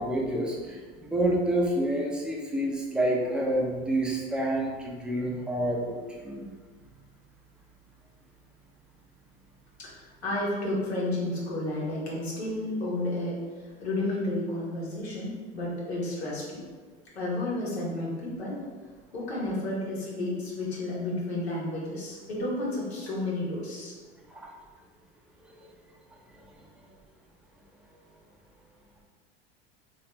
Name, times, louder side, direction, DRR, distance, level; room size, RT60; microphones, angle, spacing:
voice 1, 0.0-6.5 24.3-24.5 25.6-25.7 26.3-26.4, right 1 dB, 5° right, -2 dB, 0.6 m, -28 dB
voice 2, 9.8-16.6 17.1-18.6 19.1-23.9, left 1 dB, 85° left, -6 dB, 1.2 m, -32 dB
3.3 x 2.8 x 3.0 m, 1.4 s
hypercardioid pair, 80°, 31 cm